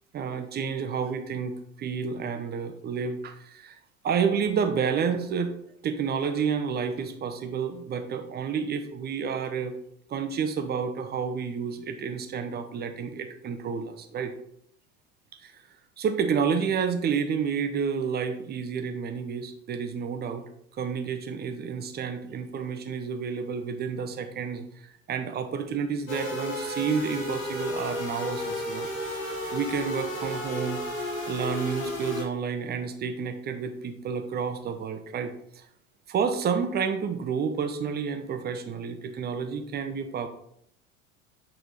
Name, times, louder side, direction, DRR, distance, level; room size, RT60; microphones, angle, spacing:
voice 1, 0.1-3.7 4.0-5.6 5.8-9.7 10.1-14.3 15.4-15.5 16.0-20.4 20.8-28.9 29.5-30.8 31.3-35.6 36.1-40.3, right 6 dB, 25° right, 7 dB, 0.8 m, -30 dB
sound 1, 26.1-32.3, left 1 dB, 90° left, 1.3 m, -33 dB
8.3 x 3.7 x 3.2 m, 0.71 s
figure-of-eight pair, 75°, 39 cm